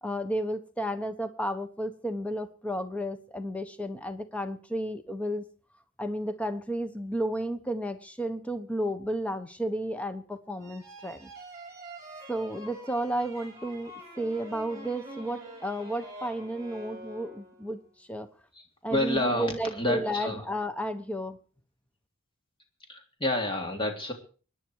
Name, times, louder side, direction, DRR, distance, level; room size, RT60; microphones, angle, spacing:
voice 1, 0.0-5.4 6.0-11.3 12.3-18.3 18.8-21.4, right 1 dB, 5° left, 9 dB, 1.1 m, -32 dB
sound 1, 10.6-17.8, right 1 dB, 15° right, 5.8 m, -46 dB
voice 2, 18.9-20.4 22.9-24.1, left 1 dB, 25° left, 3 dB, 3.2 m, -29 dB
24.5 x 10.5 x 4.8 m, 0.40 s
head